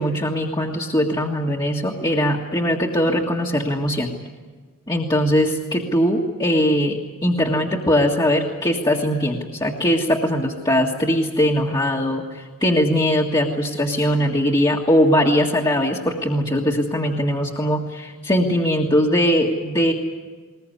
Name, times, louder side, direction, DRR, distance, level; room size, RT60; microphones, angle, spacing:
voice 1, 0.0-4.1 4.9-19.9, equal, 20° left, -3 dB, 1.8 m, -20 dB
21.0 x 21.0 x 9.8 m, 1.4 s
head